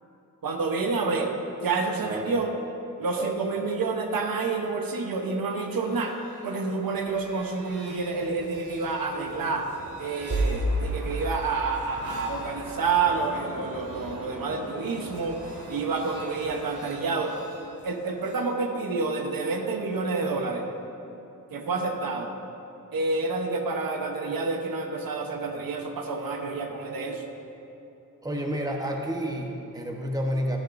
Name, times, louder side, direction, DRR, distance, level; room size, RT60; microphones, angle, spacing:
voice 1, 0.4-1.3 1.6-2.5 3.0-6.1 6.4-9.7 10.0-17.3 17.8-20.7 21.5-22.3 22.9-27.2, right 4 dB, 75° right, 3 dB, 1.0 m, -28 dB
voice 2, 2.0-2.5 3.1-3.4 28.2-30.6, equal, 10° right, 0 dB, 1.1 m, -30 dB
sound 1, 5.6-18.5, right 1 dB, 55° right, 2.4 m, -36 dB
12.0 x 11.0 x 2.6 m, 2.9 s
wide cardioid pair, 95°, 35 cm